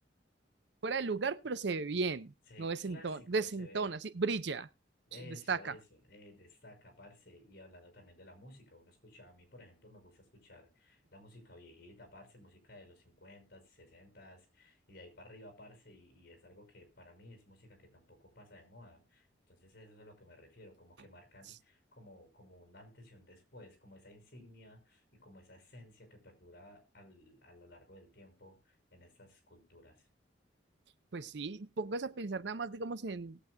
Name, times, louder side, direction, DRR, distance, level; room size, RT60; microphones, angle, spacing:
voice 1, 0.8-4.7 5.2-5.7 31.1-33.4, right 4 dB, 65° right, 0.6 m, -35 dB
voice 2, 2.5-4.0 5.1-30.1, left 1 dB, 55° left, 5.8 m, -56 dB
20.0 x 8.1 x 2.2 m
head